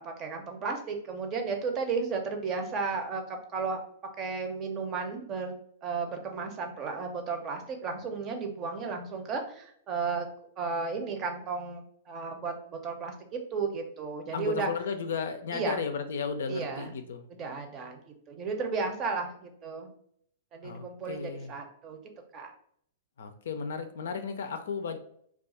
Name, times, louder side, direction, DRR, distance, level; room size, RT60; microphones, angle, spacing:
voice 1, 0.0-3.8 4.2-10.3 10.6-14.7 15.5-15.8 16.5-16.9 17.4-19.9 20.5-22.0 22.3-22.5, right 4 dB, 30° right, 4 dB, 0.6 m, -34 dB
voice 2, 14.3-17.2 20.6-21.5 23.2-25.0, left 6 dB, 75° left, 8 dB, 0.4 m, -34 dB
2.4 x 2.3 x 4.0 m, 0.66 s
hypercardioid pair, 125°, 0 cm